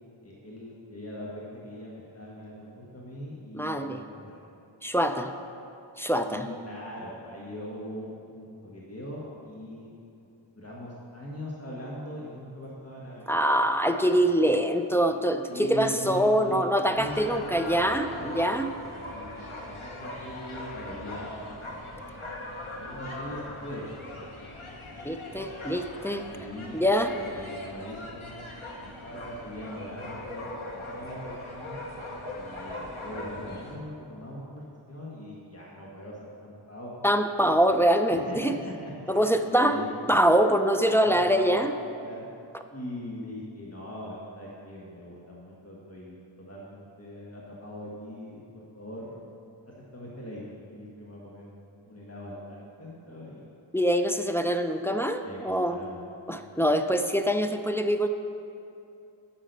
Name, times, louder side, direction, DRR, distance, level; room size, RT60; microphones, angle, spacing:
voice 1, 0.2-4.5 6.3-9.9 10.2-10.3 10.5-13.4 14.4-14.6 15.5-18.5 19.1-22.4 22.8-24.5 24.9-25.4 26.3-26.8 27.1-31.8 32.3-36.9 37.4-37.8 38.1-40.2 40.9-41.7 42.0-42.3 42.7-48.4 48.7-49.2 49.9-51.5 51.8-53.5 55.2-56.7, equal, 30° left, -5 dB, 1.6 m, -41 dB
voice 2, 3.5-4.0 4.8-5.3 6.0-6.4 13.3-18.7 25.0-26.2 26.7-27.1 37.0-38.5 39.1-41.7 53.7-55.8 56.3-58.1, equal, 5° left, 6 dB, 0.5 m, -24 dB
sound 1, 17.0-33.8, left 1 dB, 90° left, 1.3 m, -40 dB
10.5 x 6.3 x 6.7 m, 2.7 s
wide cardioid pair, 40°, 48 cm